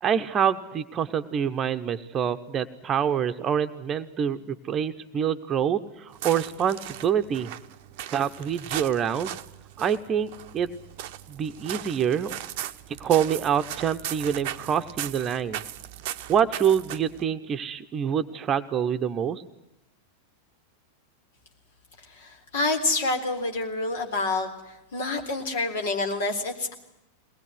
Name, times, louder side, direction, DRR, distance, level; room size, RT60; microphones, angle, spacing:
voice 1, 0.0-7.5 8.1-9.4 9.8-10.7 11.3-12.4 13.0-15.6 16.3-19.4, right 8 dB, 25° right, 9 dB, 1.1 m, -26 dB
sound 1, 6.1-17.3, right 12 dB, 45° right, 0.9 m, -38 dB
voice 2, 22.0-26.7, left 3 dB, 55° left, 4 dB, 3.8 m, -28 dB
22.0 x 19.5 x 9.5 m, 0.92 s
figure-of-eight pair, 90°, 0 cm